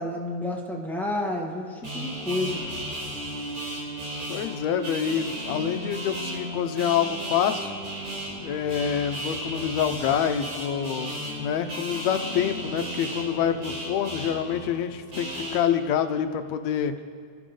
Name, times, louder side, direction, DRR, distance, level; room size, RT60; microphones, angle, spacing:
voice 1, 0.0-2.6, left 2 dB, ahead, -2 dB, 0.9 m, -30 dB
sound 1, 1.8-15.6, right 1 dB, 70° right, 5.9 m, -34 dB
voice 2, 4.3-7.7 8.4-16.9, left 9 dB, 75° left, 8 dB, 1.9 m, -27 dB
26.0 x 13.0 x 3.8 m, 2.1 s
omnidirectional pair, 3.4 m